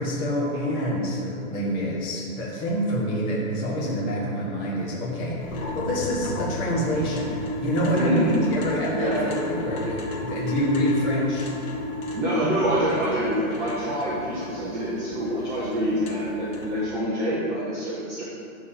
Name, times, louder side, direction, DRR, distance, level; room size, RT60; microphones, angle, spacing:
voice 1, 0.0-7.3 7.6-11.5, equal, 20° left, -5 dB, 1.5 m, -26 dB
sound 1, 5.4-16.8, left 1 dB, 75° left, 1.9 m, -34 dB
voice 2, 7.9-8.4 8.9-9.2 12.1-18.2, equal, 5° right, -9 dB, 0.6 m, -26 dB
12.0 x 4.1 x 7.4 m, 2.6 s
hypercardioid pair, 160°, 43 cm